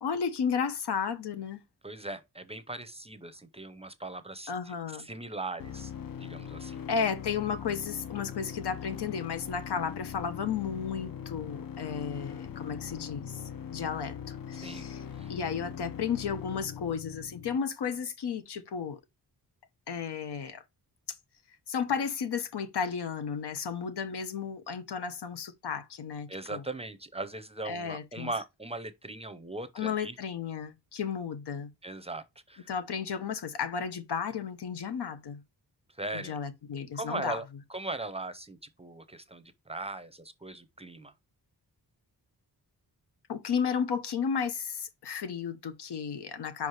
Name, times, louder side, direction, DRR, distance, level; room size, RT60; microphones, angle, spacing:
voice 1, 0.0-1.6 4.5-5.1 6.9-13.4 13.7-15.0 15.3-19.0 19.9-20.6 21.7-26.6 27.7-28.3 29.8-31.7 32.7-35.4 36.1-37.4 43.3-46.7, left 6 dB, 80° left, 1.0 m, -33 dB
voice 2, 1.8-6.8 14.6-14.9 15.1-15.4 26.3-30.2 31.8-32.7 35.9-36.4 36.9-41.1, right 2 dB, 15° right, 0.6 m, -39 dB
sound 1, 5.6-17.6, left 8 dB, 60° left, 0.6 m, -41 dB
5.2 x 4.7 x 4.7 m
wide cardioid pair, 155°, 39 cm